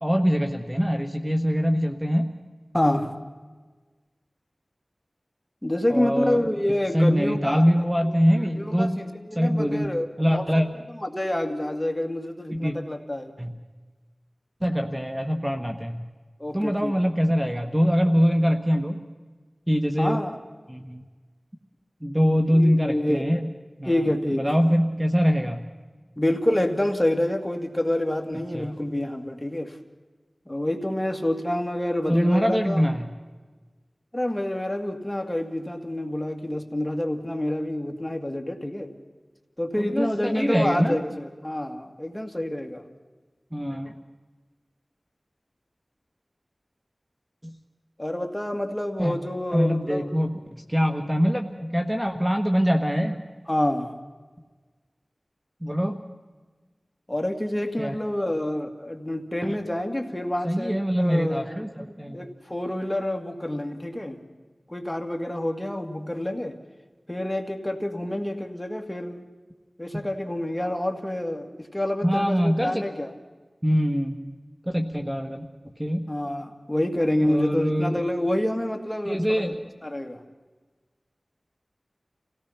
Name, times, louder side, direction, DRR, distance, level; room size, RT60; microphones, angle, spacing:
voice 1, 0.0-2.3 5.9-6.5 6.9-9.0 9.4-9.9 10.2-10.7 12.5-12.8 13.4-13.6 14.6-16.0 16.5-19.0 19.7-20.2 20.7-21.0 22.0-23.4 23.8-24.1 24.4-25.6 28.3-28.7 32.1-33.1 39.8-41.0 43.5-43.9 49.0-49.1 49.5-53.2 55.6-56.0 57.8-58.0 59.4-59.6 60.4-62.2 69.9-70.0 72.0-72.8 73.6-74.3 74.6-75.4 75.8-76.1 77.2-78.0 79.0-79.5, equal, 15° right, 5 dB, 1.3 m, -23 dB
voice 2, 2.7-3.2 5.6-8.1 8.4-10.5 10.9-13.3 16.4-16.9 20.0-20.4 22.5-23.3 23.9-24.6 26.2-29.8 30.5-32.8 34.1-38.9 39.6-42.8 48.0-50.1 53.5-53.9 57.1-61.5 62.1-64.2 64.7-66.6 67.1-69.2 69.8-73.1 76.1-79.4 79.8-80.2, left 1 dB, 15° left, 4 dB, 2.3 m, -27 dB
28.5 x 17.5 x 5.9 m, 1.3 s
wide cardioid pair, 60°, 0 cm